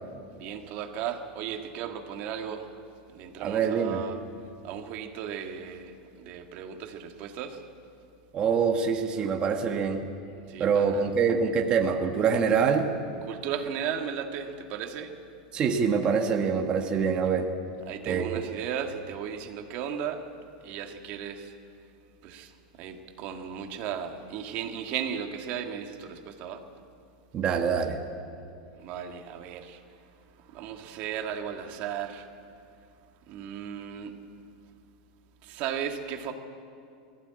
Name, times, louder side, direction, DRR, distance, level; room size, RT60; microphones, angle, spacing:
voice 1, 0.3-2.7 3.1-4.2 4.6-7.6 10.5-11.1 13.3-15.1 17.9-20.2 20.6-21.5 22.2-26.6 28.8-29.8 30.5-32.3 33.3-34.1 35.4-36.3, right 8 dB, 45° right, 5 dB, 1.8 m, -35 dB
voice 2, 3.4-4.0 8.3-10.0 10.6-12.9 15.5-17.5 18.1-18.4 27.3-28.0, right 6 dB, 25° right, 3 dB, 1.4 m, -25 dB
20.0 x 15.5 x 8.9 m, 2.4 s
supercardioid pair, 155°, 4 cm